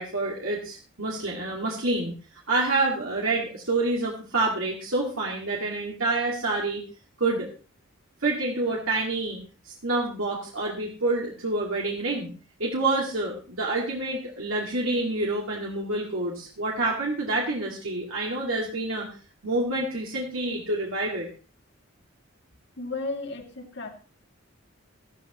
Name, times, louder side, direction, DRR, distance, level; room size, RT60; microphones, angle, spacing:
voice 1, 0.0-2.1 2.5-6.8 7.2-7.5 8.2-9.4 9.6-12.3 12.6-19.1 19.4-21.3, right 2 dB, 75° right, -3 dB, 2.3 m, -27 dB
voice 2, 22.8-23.9, left 3 dB, 55° left, 3 dB, 2.4 m, -33 dB
15.0 x 13.0 x 3.1 m, 0.37 s
head